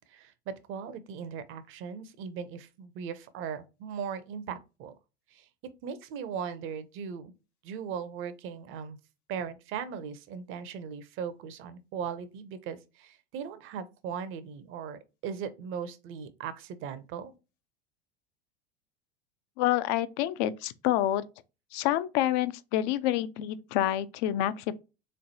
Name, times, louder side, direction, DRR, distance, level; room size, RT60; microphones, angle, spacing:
voice 1, 0.1-4.9 5.3-5.4 5.8-7.3 7.6-9.0 9.3-17.3, right 7 dB, 40° right, 0.7 m, -38 dB
voice 2, 19.6-21.2 21.7-24.7, left 13 dB, 50° left, 0.4 m, -28 dB
3.7 x 3.2 x 2.7 m
figure-of-eight pair, 80°, 31 cm